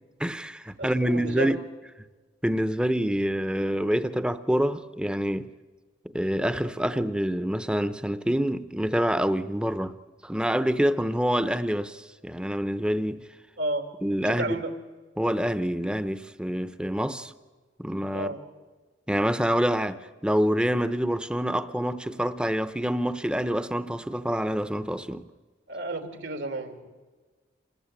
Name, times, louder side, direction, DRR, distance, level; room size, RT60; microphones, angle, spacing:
voice 1, 0.2-1.6 2.4-5.5 6.1-10.0 10.2-13.3 14.0-14.6 15.2-17.3 17.8-18.3 19.1-25.3, equal, 5° right, 0.8 m, -26 dB
voice 2, 0.8-1.5 13.6-13.9 14.2-14.7 18.1-18.4 25.7-26.9, right 2 dB, 80° right, 3.0 m, -32 dB
27.5 x 20.0 x 9.0 m
head